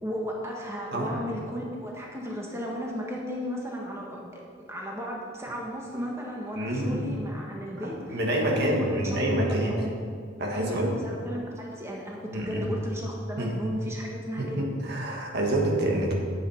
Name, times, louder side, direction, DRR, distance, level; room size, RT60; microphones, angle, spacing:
voice 1, 0.0-10.0 10.5-14.6, equal, 15° right, -2 dB, 1.3 m, -35 dB
voice 2, 6.6-7.1 7.8-9.7 10.4-10.9 12.3-12.7 13.4-13.6 14.4-16.1, right 1 dB, 60° right, -1 dB, 1.8 m, -27 dB
10.0 x 8.4 x 5.0 m, 2.3 s
head